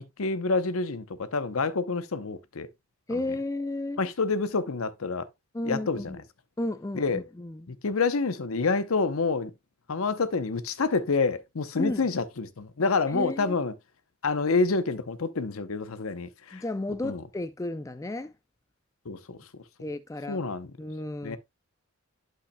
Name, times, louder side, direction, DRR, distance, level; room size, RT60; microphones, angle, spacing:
voice 1, 0.0-2.7 3.1-3.2 4.0-5.3 5.6-6.2 7.0-7.2 7.7-9.5 9.9-13.7 14.2-16.6 17.0-17.2 19.1-19.4 20.3-20.7 21.2-21.4, left 4 dB, 75° left, 0.7 m, -28 dB
voice 2, 3.1-4.0 5.5-6.2 6.6-7.7 11.8-12.0 13.1-13.4 16.5-18.3 19.8-20.4 20.8-21.4, left 2 dB, 15° left, 0.3 m, -33 dB
11.5 x 5.6 x 2.2 m
head